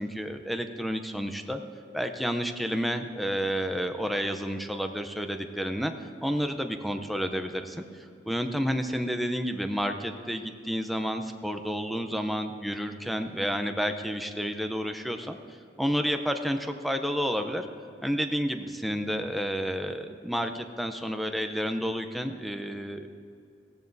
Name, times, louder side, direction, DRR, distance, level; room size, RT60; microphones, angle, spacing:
voice 1, 0.0-1.6 1.9-5.9 6.2-15.4 15.8-17.7 18.0-23.1, equal, ahead, 6 dB, 0.6 m, -30 dB
16.5 x 14.5 x 2.7 m, 2.5 s
head